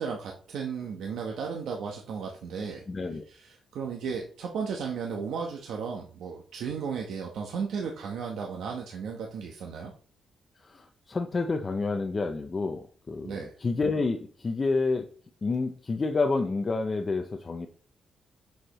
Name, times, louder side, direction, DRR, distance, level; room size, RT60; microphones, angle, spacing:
voice 1, 0.0-2.8 3.3-9.9 13.2-13.5, right 6 dB, 75° right, 0 dB, 1.0 m, -35 dB
voice 2, 2.9-3.3 10.6-15.1 15.4-17.7, left 3 dB, 25° left, 4 dB, 0.5 m, -29 dB
7.6 x 6.4 x 3.0 m, 0.42 s
wide cardioid pair, 180°, 0 cm